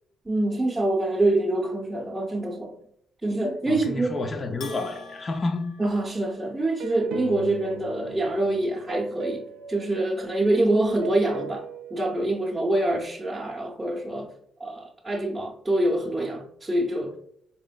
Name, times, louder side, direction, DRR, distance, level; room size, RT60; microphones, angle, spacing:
voice 1, 0.3-2.8 3.2-4.2 5.8-14.3 14.6-17.2, right 1 dB, 15° right, 0.6 m, -25 dB
voice 2, 3.7-5.7, left 2 dB, 35° left, 0.4 m, -30 dB
Bell, 4.6-6.8, left 4 dB, 85° left, 0.6 m, -44 dB
sound 1, 6.8-10.6 11.0-13.1, right 3 dB, 85° right, 0.3 m, -38 dB
4.3 x 3.0 x 2.2 m
cardioid pair, 90°, 0 cm